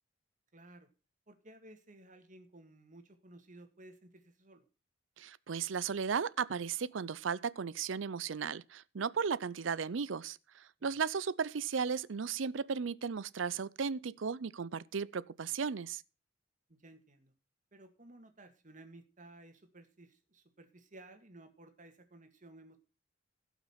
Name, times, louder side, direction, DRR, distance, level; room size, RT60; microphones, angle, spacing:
voice 1, 0.5-0.9 1.3-4.7 10.8-11.0 16.7-17.3 17.7-22.8, right 2 dB, 40° right, 2.1 m, -56 dB
voice 2, 5.2-16.0, right 6 dB, 75° right, 0.5 m, -35 dB
16.5 x 5.9 x 5.7 m
head